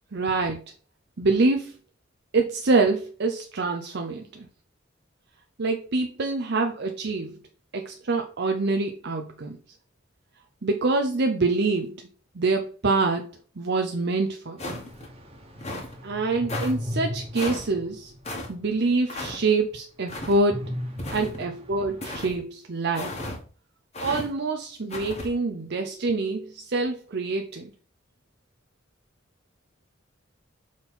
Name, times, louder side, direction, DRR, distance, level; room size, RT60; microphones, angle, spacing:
voice 1, 0.1-0.6 1.2-1.8 2.3-4.5 5.6-7.4 7.7-9.6 10.6-12.0 12.4-13.3 13.6-14.8 16.0-18.1 18.5-20.7 21.1-23.1 24.0-27.7, right 3 dB, 60° right, 0.7 m, -25 dB
sound 1, 14.6-15.1 15.6-15.9 16.5-16.7 17.4-17.7 18.2-18.5 19.1-19.4 20.1-20.4 21.0-21.5 22.0-22.3 22.9-23.4 23.9-24.3 24.9-25.3, left 2 dB, 35° left, 1.9 m, -34 dB
sound 2, 14.6-18.9 19.3-19.4 20.5-22.1, left 1 dB, 30° right, 1.6 m, -37 dB
6.2 x 4.5 x 5.6 m
head